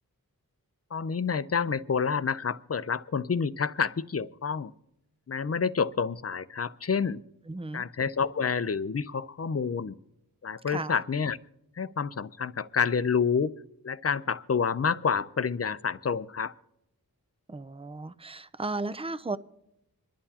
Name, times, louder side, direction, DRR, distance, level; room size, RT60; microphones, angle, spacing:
voice 1, 0.9-4.7 5.3-7.2 7.7-10.0 10.4-11.4 11.8-13.5 13.8-16.5, left 6 dB, 40° left, 0.5 m, -28 dB
voice 2, 7.5-7.8 10.7-10.9 17.5-19.4, right 3 dB, 15° right, 0.4 m, -35 dB
25.5 x 11.0 x 2.9 m
wide cardioid pair, 65°, 37 cm